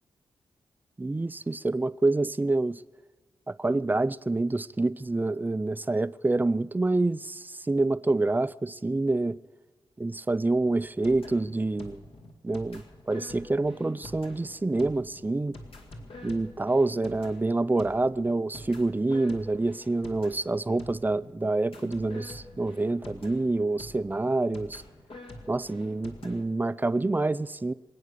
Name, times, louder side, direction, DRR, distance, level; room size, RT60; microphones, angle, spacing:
voice 1, 1.0-2.8 3.5-9.4 10.0-12.0 12.4-15.6 16.2-24.8 25.5-27.7, right 2 dB, 20° right, 0.5 m, -27 dB
sound 1, 10.5-26.4, left 1 dB, 70° left, 2.3 m, -46 dB
25.0 x 8.6 x 6.7 m
cardioid pair, 75°, 10 cm